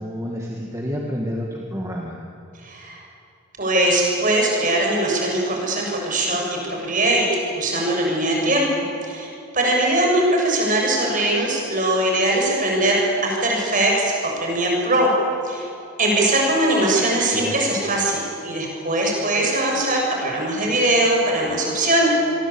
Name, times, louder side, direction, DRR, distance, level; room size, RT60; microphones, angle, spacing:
voice 1, 0.0-2.2 17.3-17.8, equal, 15° right, -1 dB, 2.0 m, -29 dB
voice 2, 2.6-3.0 3.6-7.3 7.6-15.1 15.4-15.7 16.0-22.1, right 1 dB, 35° right, -1 dB, 7.4 m, -21 dB
27.0 x 22.5 x 8.8 m, 2.7 s
head